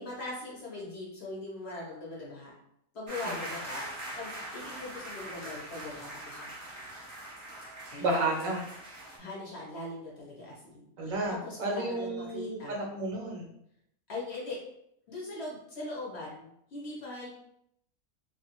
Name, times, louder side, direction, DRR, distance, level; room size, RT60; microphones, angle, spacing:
voice 1, 0.0-2.5 2.9-3.9 4.2-6.5 7.9-8.2 8.9-12.9 14.1-14.6 15.1-17.3, left 2 dB, 60° left, -4 dB, 0.8 m, -41 dB
sound 1, 3.1-9.2, right 1 dB, 30° right, 0.6 m, -42 dB
voice 2, 8.0-8.6 11.0-13.5, right 2 dB, 70° right, 0 dB, 1.0 m, -32 dB
2.5 x 2.3 x 2.8 m, 0.76 s
omnidirectional pair, 1.5 m